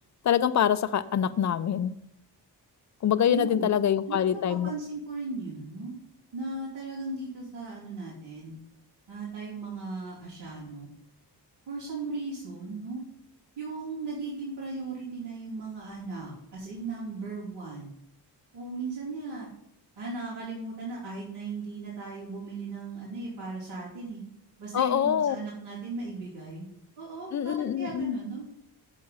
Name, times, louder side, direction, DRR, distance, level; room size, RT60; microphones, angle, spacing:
voice 1, 0.2-2.0 3.0-4.7 24.7-25.4 27.3-28.2, left 9 dB, 45° left, 14 dB, 0.4 m, -25 dB
voice 2, 3.2-3.7 4.1-6.0 6.3-8.6 9.1-10.9 11.7-13.0 13.6-17.9 18.5-19.5 20.0-24.2 24.6-26.7 27.0-28.5, right 3 dB, 85° right, -8 dB, 2.9 m, -37 dB
7.6 x 4.8 x 5.6 m, 0.76 s
wide cardioid pair, 125°, 42 cm